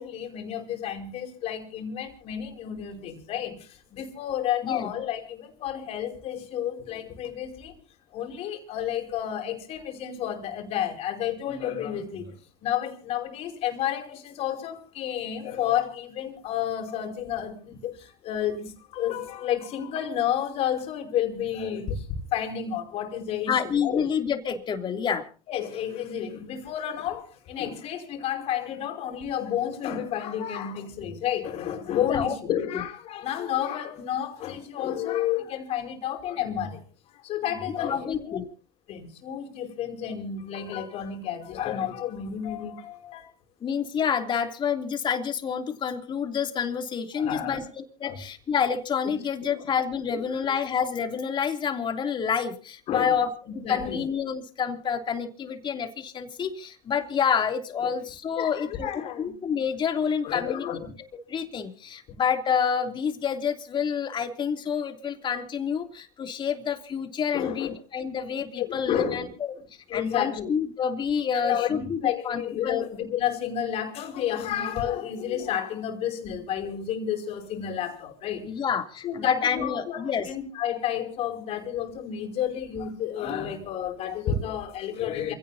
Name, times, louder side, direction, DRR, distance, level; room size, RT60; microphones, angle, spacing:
voice 1, 0.0-7.8 8.1-12.3 12.6-23.6 23.8-24.0 25.5-36.8 37.2-38.4 38.9-43.3 47.1-47.6 48.0-48.2 49.6-49.7 50.1-50.3 52.9-53.2 53.6-54.0 57.8-57.9 58.4-59.3 60.2-60.9 67.3-67.7 68.6-69.3 69.9-70.5 71.3-78.4 79.0-85.3, left 9 dB, 60° left, 5.2 m, -31 dB
voice 2, 23.5-25.3 32.1-32.3 32.7-32.8 37.7-38.5 43.6-47.6 48.0-60.7 61.3-69.5 69.9-72.8 78.4-80.3, left 7 dB, 40° left, 3.1 m, -28 dB
28.0 x 17.0 x 2.8 m
supercardioid pair, 95°, 12 cm